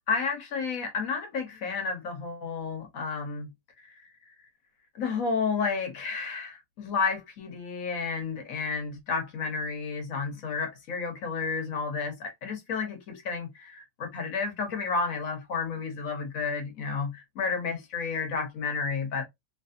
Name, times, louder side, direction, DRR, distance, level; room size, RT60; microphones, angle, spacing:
voice 1, 0.1-3.5 3.8-4.0 4.9-19.2, left 5 dB, 80° left, 1.4 m, -31 dB
3.1 x 2.7 x 2.4 m
omnidirectional pair, 1.4 m